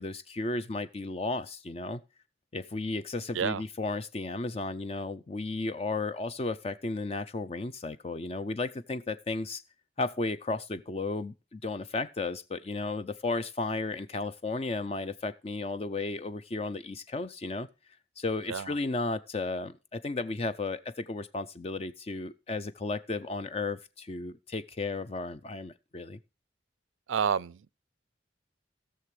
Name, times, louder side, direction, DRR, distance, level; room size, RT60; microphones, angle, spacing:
voice 1, 0.0-2.0 2.5-9.6 10.0-17.7 18.2-26.2, left 3 dB, 30° left, 0.4 m, -34 dB
voice 2, 27.1-27.7, right 7 dB, 90° right, 0.4 m, -29 dB
18.0 x 6.7 x 3.2 m
head